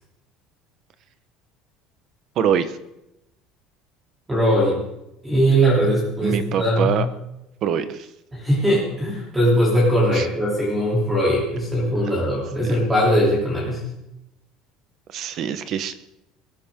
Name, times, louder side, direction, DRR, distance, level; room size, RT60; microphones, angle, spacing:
voice 1, 2.4-2.8 6.2-7.1 7.6-8.1 10.1-10.3 12.6-12.8 15.1-16.0, right 8 dB, 40° right, 12 dB, 1.0 m, -24 dB
voice 2, 4.3-4.8 5.2-6.9 8.3-13.8, equal, 10° right, -4 dB, 3.2 m, -20 dB
21.5 x 15.0 x 3.7 m, 0.86 s
cardioid pair, 180°, 0 cm